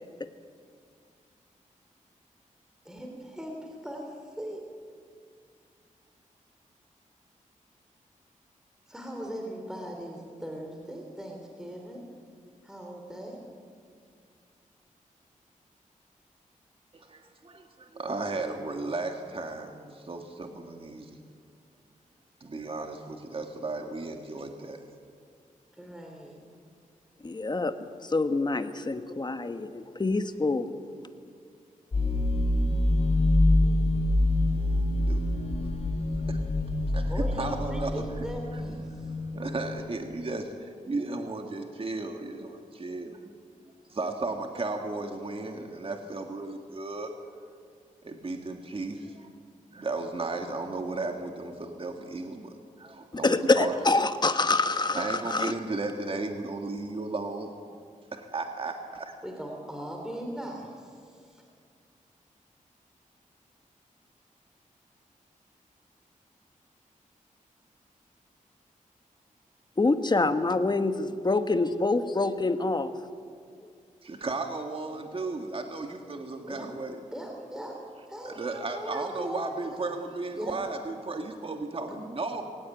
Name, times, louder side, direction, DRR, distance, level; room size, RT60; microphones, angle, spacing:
voice 1, 2.8-4.6 8.9-12.0 12.6-13.4 25.8-26.4 37.0-39.1 59.2-61.4 76.5-76.7 77.1-77.8 78.1-79.8 80.3-80.6 81.9-82.0, equal, 5° right, 1 dB, 3.3 m, -39 dB
voice 2, 16.9-21.2 22.4-24.8 35.0-35.2 36.3-36.4 36.9-38.0 38.6-38.7 39.3-43.3 43.9-47.1 48.0-49.3 49.7-53.8 54.9-57.5 58.1-59.1 74.0-77.0 78.3-82.4, right 3 dB, 40° right, 4 dB, 1.8 m, -35 dB
voice 3, 27.2-30.7 53.1-55.5 69.8-72.9, left 3 dB, 30° left, 9 dB, 1.3 m, -26 dB
sound 1, 31.9-39.9, left 1 dB, 45° left, 5.9 m, -26 dB
22.0 x 18.0 x 9.1 m, 2.2 s
wide cardioid pair, 105°, 14 cm